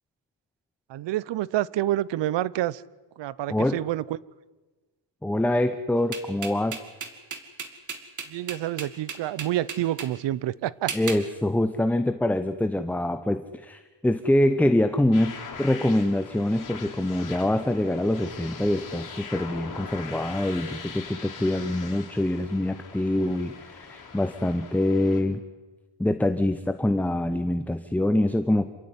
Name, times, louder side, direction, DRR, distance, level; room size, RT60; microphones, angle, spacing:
voice 1, 0.9-2.8 3.2-4.2 8.3-10.9, right 13 dB, 75° right, 22 dB, 0.8 m, -28 dB
voice 2, 5.2-6.8 10.9-15.3 15.6-25.4 26.0-28.7, left 1 dB, 5° left, 10 dB, 0.8 m, -25 dB
sound 1, 6.1-10.1 10.9-11.3, right 6 dB, 40° right, 2.5 m, -34 dB
sound 2, 15.1-25.2, left 5 dB, 45° left, 4.5 m, -41 dB
27.0 x 15.5 x 9.6 m, 1.2 s
cardioid pair, 145°, 43 cm